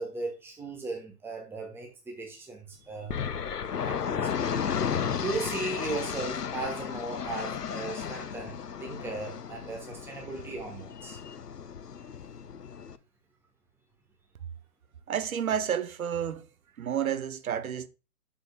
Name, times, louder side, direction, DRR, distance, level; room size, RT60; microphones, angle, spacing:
voice 1, 0.0-3.2 3.8-4.3 5.2-11.2, right 3 dB, 5° right, 1.3 m, -37 dB
sound 1, 3.1-13.0, left 7 dB, 75° left, 0.9 m, -34 dB
voice 2, 15.1-16.5 16.8-17.9, right 8 dB, 60° right, 0.9 m, -30 dB
9.5 x 7.0 x 2.3 m
figure-of-eight pair, 130°, 47 cm